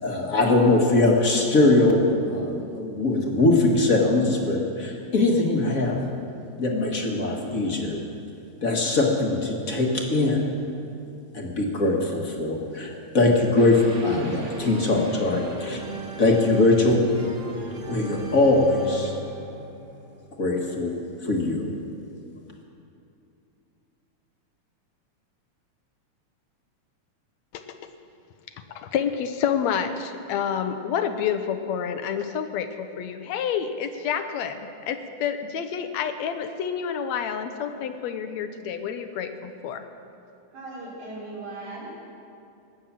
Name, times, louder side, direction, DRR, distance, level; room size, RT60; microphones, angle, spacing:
voice 1, 0.0-6.0 6.6-8.0 8.6-10.5 11.3-15.8 16.2-17.0 17.9-19.1 20.4-20.9 21.2-21.7, left 2 dB, 40° left, 0 dB, 1.3 m, -21 dB
sound 1, 13.6-20.5, right 3 dB, 50° right, 0.9 m, -38 dB
voice 2, 27.5-27.9 28.7-39.8, left 8 dB, 75° left, 8 dB, 1.8 m, -29 dB
voice 3, 40.5-42.0, right 2 dB, 85° right, -6 dB, 5.6 m, -38 dB
18.5 x 8.8 x 7.3 m, 2.6 s
omnidirectional pair, 3.4 m